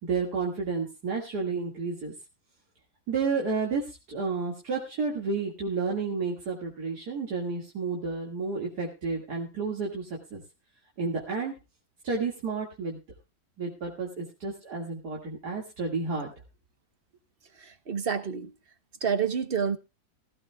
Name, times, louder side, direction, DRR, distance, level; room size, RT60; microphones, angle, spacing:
voice 1, 0.0-2.1 3.1-10.4 11.0-11.5 12.0-13.0 13.6-16.3, right 4 dB, 80° right, 2.6 m, -31 dB
voice 2, 17.6-18.5 19.0-19.8, right 7 dB, 40° right, 1.0 m, -28 dB
16.5 x 15.5 x 2.3 m
omnidirectional pair, 1.7 m